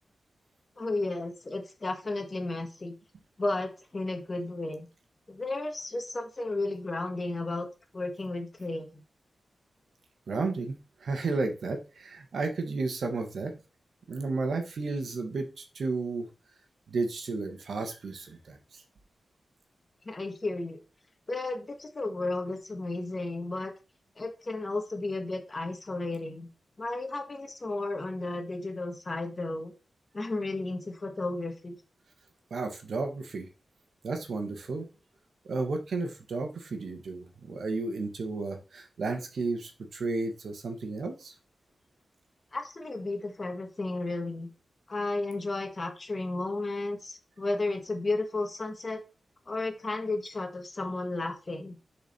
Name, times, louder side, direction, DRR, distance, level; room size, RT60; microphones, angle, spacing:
voice 1, 0.8-2.9 3.4-4.9 5.3-7.7 7.9-9.0 20.0-20.8 21.3-23.7 24.2-26.5 26.8-29.7 30.1-31.8 42.5-44.5 44.9-49.0 49.5-51.8, left 2 dB, 30° left, 5 dB, 1.5 m, -33 dB
voice 2, 10.3-13.5 14.1-16.3 16.9-18.8 32.5-33.5 34.0-34.9 35.4-41.3, right 3 dB, 75° right, 5 dB, 1.6 m, -33 dB
7.1 x 4.8 x 4.4 m, 0.32 s
wide cardioid pair, 150°, 0 cm